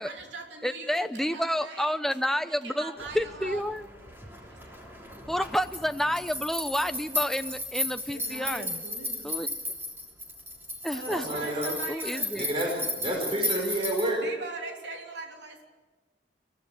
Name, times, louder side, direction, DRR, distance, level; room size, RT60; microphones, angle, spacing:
voice 1, 0.0-2.2 2.4-3.7 4.4-4.8 8.1-9.4 10.9-12.3 14.2-15.7, right 3 dB, 80° right, 3.2 m, -41 dB
voice 2, 0.6-3.8 5.3-8.8 9.2-9.5 10.8-11.4 11.9-12.5, equal, ahead, 0.7 m, -29 dB
sound 1, 3.0-14.1, left 1 dB, 15° right, 3.4 m, -35 dB
voice 3, 11.0-11.7 12.3-14.2, right 1 dB, 30° right, 5.0 m, -30 dB
23.0 x 16.5 x 8.1 m
head